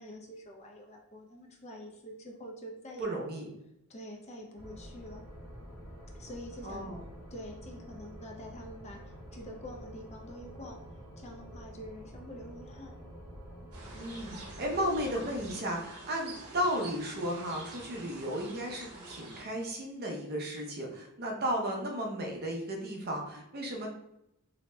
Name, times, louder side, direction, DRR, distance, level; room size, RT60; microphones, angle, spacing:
voice 1, 0.0-3.1 3.9-5.2 6.2-7.0 7.3-10.8 11.2-13.0, equal, 30° left, 1 dB, 0.4 m, -46 dB
voice 2, 3.0-3.5 6.6-7.0 13.9-23.9, equal, 45° right, 0 dB, 0.5 m, -34 dB
sound 1, 4.6-15.5, equal, 15° right, 0.9 m, -48 dB
sound 2, 13.7-19.4, right 2 dB, 80° right, 0.7 m, -47 dB
2.7 x 2.1 x 3.1 m, 0.83 s
head